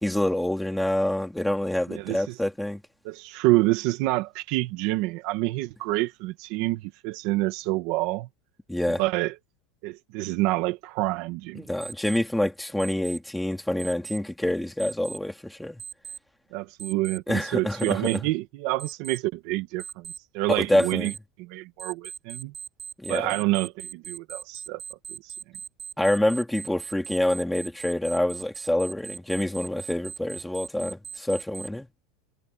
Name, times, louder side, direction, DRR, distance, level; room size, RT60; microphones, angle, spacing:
voice 1, 0.0-2.8 8.7-9.0 11.5-15.8 17.3-18.2 20.5-21.1 23.0-23.4 26.0-31.9, left 1 dB, ahead, 3.1 m, -26 dB
voice 2, 1.9-2.4 3.0-8.3 9.0-9.3 9.8-11.6 16.5-21.1 21.4-22.5 23.1-24.8 25.2-25.3, right 19 dB, 45° right, 1.5 m, -27 dB
Alarm, 11.8-12.2 12.8-13.2 13.8-14.2 14.8-15.2 15.8-16.2 16.8-17.2 17.8-18.2 18.8-19.2 19.8-20.2 20.8-21.2 21.8-31.7, right 6 dB, 15° right, 4.4 m, -39 dB
supercardioid pair, 180°, 0 cm